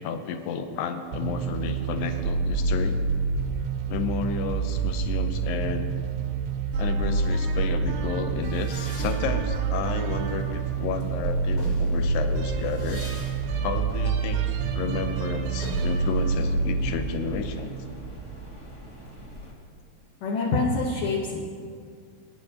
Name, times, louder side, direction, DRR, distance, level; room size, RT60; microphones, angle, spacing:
voice 1, 0.0-3.0 3.9-6.0 6.8-13.1 13.6-14.4 14.8-17.7, left 6 dB, 85° left, 7 dB, 2.0 m, -31 dB
sound 1, 1.1-18.4, right 4 dB, 85° right, 3.0 m, -27 dB
sound 2, 8.4-10.9 11.3-18.9, left 2 dB, 50° left, 3.4 m, -44 dB
sound 3, 10.1-19.5, left 1 dB, 35° left, 1.2 m, -44 dB
voice 2, 20.2-21.4, left 3 dB, 65° left, -3 dB, 2.3 m, -25 dB
22.0 x 10.0 x 2.8 m, 2.1 s
omnidirectional pair, 4.9 m